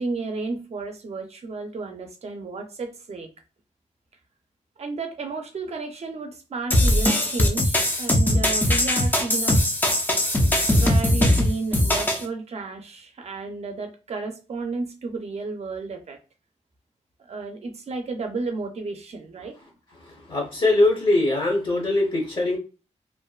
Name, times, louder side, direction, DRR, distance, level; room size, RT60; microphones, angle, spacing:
voice 1, 0.0-3.3 4.8-9.6 10.7-16.2 17.2-19.6, right 3 dB, 60° right, 4 dB, 0.5 m, -32 dB
sound 1, 6.7-12.2, left 1 dB, 15° left, 0.4 m, -20 dB
voice 2, 20.0-22.6, left 2 dB, 40° left, 0 dB, 0.7 m, -22 dB
2.5 x 2.2 x 2.3 m, 0.32 s
wide cardioid pair, 135°, 12 cm